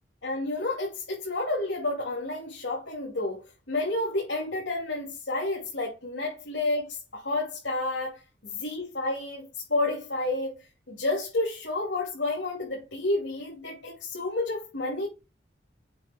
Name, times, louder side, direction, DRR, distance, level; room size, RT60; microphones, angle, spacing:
voice 1, 0.2-8.2 8.5-10.5 10.9-15.1, left 2 dB, 85° left, 2.9 m, -30 dB
7.7 x 3.3 x 6.2 m
head